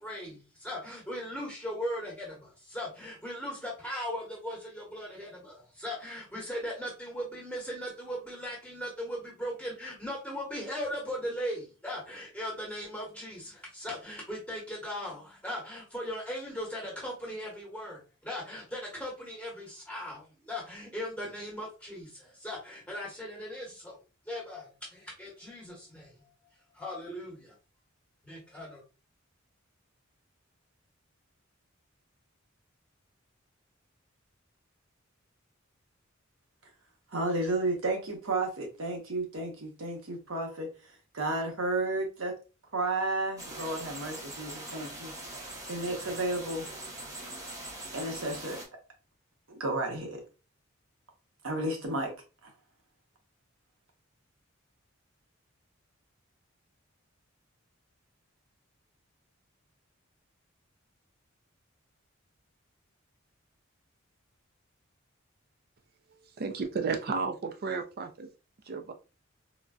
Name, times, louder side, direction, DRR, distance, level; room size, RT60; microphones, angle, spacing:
voice 1, 0.0-24.0 24.3-26.1 26.7-27.5 28.2-28.8, equal, 5° left, 1.1 m, -38 dB
voice 2, 37.1-42.4 42.7-45.4 45.7-46.7 47.9-48.6 49.5-50.2 51.4-52.1 52.4-52.5, right 2 dB, 80° right, 0.9 m, -32 dB
sound 1, 43.4-48.6, right 1 dB, 15° right, 0.8 m, -42 dB
voice 3, 66.4-68.3 68.7-68.9, right 4 dB, 50° right, 0.4 m, -33 dB
3.8 x 2.2 x 2.3 m
head